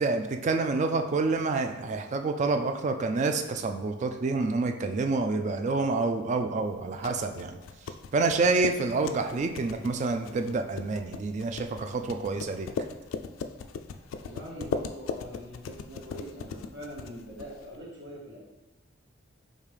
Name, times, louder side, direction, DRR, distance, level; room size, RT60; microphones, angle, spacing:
voice 1, 0.0-7.6 8.1-12.7, right 3 dB, 40° right, 6 dB, 0.3 m, -28 dB
sound 1, 6.7-17.8, left 5 dB, 85° left, 0.3 m, -39 dB
voice 2, 14.2-18.4, equal, 60° right, -5 dB, 1.4 m, -43 dB
5.0 x 2.7 x 3.3 m, 1.2 s
head